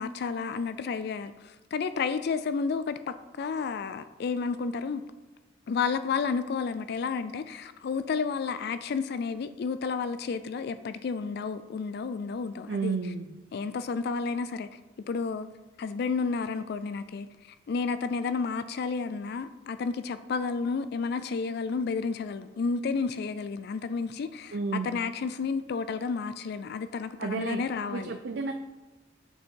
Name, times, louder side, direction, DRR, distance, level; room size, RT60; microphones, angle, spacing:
voice 1, 0.0-5.0 5.7-13.0 13.5-14.8 15.1-15.5 15.8-28.2, left 5 dB, 55° left, 0.3 m, -31 dB
voice 2, 12.7-13.4 24.5-24.9 27.2-27.6 27.9-28.5, right 4 dB, 60° right, 0.5 m, -31 dB
7.9 x 6.5 x 4.5 m
head